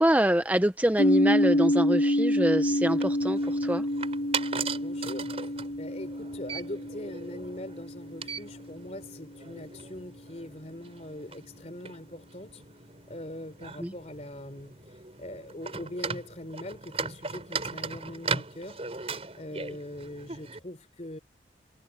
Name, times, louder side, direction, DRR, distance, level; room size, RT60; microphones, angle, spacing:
voice 1, 0.0-3.8 13.8-13.9, right 1 dB, 10° right, 0.6 m, -25 dB
sound 1, 1.0-8.8, equal, 65° left, 1.8 m, -27 dB
sound 2, 2.6-20.6, right 5 dB, 35° right, 5.7 m, -39 dB
voice 2, 4.7-12.6 13.1-21.2, left 1 dB, 40° left, 3.6 m, -42 dB
head